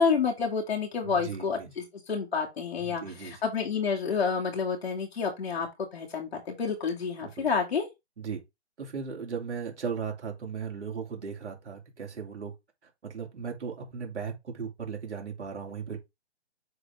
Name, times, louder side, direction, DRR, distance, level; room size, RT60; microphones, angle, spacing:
voice 1, 0.0-7.9, left 5 dB, 65° left, 2.3 m, -29 dB
voice 2, 1.0-1.7 2.8-3.4 7.2-7.5 8.2-8.4 8.8-12.5 12.8-16.0, right 6 dB, 80° right, 2.9 m, -37 dB
7.6 x 3.6 x 3.4 m
hypercardioid pair, 175°, 34 cm